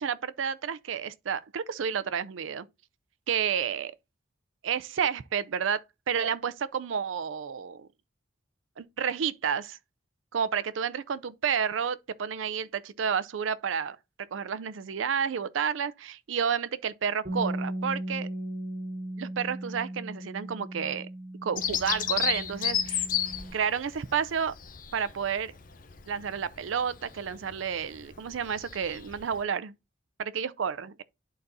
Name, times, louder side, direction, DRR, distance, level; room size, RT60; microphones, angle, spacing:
voice 1, 0.0-2.7 3.3-3.9 4.6-7.9 8.8-9.8 10.3-14.0 14.3-18.3 19.2-21.1 21.4-23.1 23.5-24.5 24.9-25.5 26.1-29.7 30.2-31.0, right 7 dB, 85° right, 0.5 m, -30 dB
Bass guitar, 17.2-23.5, right 1 dB, 45° right, 3.8 m, -37 dB
Bird vocalization bird call bird song, 21.6-29.4, left 9 dB, 45° left, 0.7 m, -33 dB
11.0 x 4.1 x 2.6 m
head